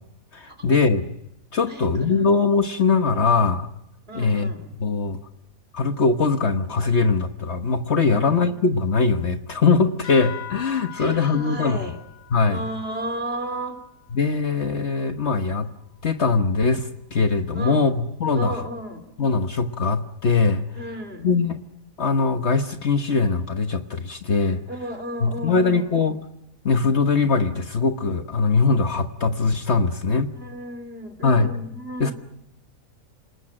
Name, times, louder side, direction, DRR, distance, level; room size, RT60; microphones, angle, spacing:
voice 1, 0.3-1.1 1.5-3.7 4.1-5.2 5.7-11.8 12.3-12.6 14.1-15.7 16.0-18.6 19.2-20.6 21.2-21.6 22.0-24.6 25.2-26.2 26.6-30.3 31.2-31.6 32.0-32.1, left 4 dB, 50° left, 8 dB, 1.4 m, -21 dB
voice 2, 1.6-2.2 4.1-4.7 8.0-8.5 10.9-12.0 12.5-13.8 17.5-17.9 18.3-19.0 20.8-21.3 24.7-25.9 30.3-32.1, right 1 dB, 40° right, 8 dB, 3.5 m, -34 dB
sound 1, 10.0-15.0, left 10 dB, 75° left, 8.0 m, -42 dB
28.0 x 20.0 x 8.8 m, 0.81 s
omnidirectional pair, 1.5 m